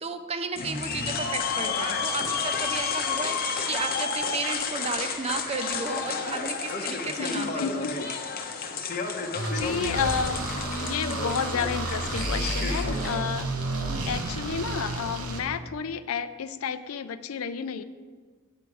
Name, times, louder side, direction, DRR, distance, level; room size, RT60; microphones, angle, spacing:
voice 1, 0.0-7.8 13.9-14.3, right 4 dB, 30° right, 9 dB, 0.5 m, -34 dB
sound 1, 0.6-13.2, left 5 dB, 45° left, 0.8 m, -31 dB
voice 2, 7.2-8.1 9.5-10.4 10.8-13.5 14.1-17.8, left 6 dB, 70° left, 12 dB, 0.4 m, -31 dB
sound 2, 9.3-15.4, right 2 dB, 80° right, 1.0 m, -31 dB
8.4 x 4.6 x 6.9 m, 1.5 s
head